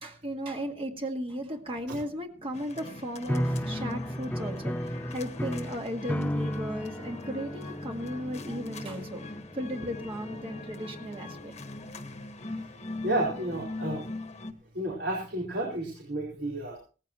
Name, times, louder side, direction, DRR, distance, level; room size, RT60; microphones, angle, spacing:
voice 1, 0.0-11.5, equal, 35° right, 3 dB, 1.9 m, -36 dB
sound 1, 2.5-14.5, left 2 dB, 40° left, 1.4 m, -41 dB
sound 2, 3.3-11.6, equal, 10° left, 0.6 m, -35 dB
voice 2, 13.0-14.0 14.7-16.8, right 1 dB, 75° right, -3 dB, 4.3 m, -31 dB
18.0 x 14.5 x 3.0 m, 0.38 s
head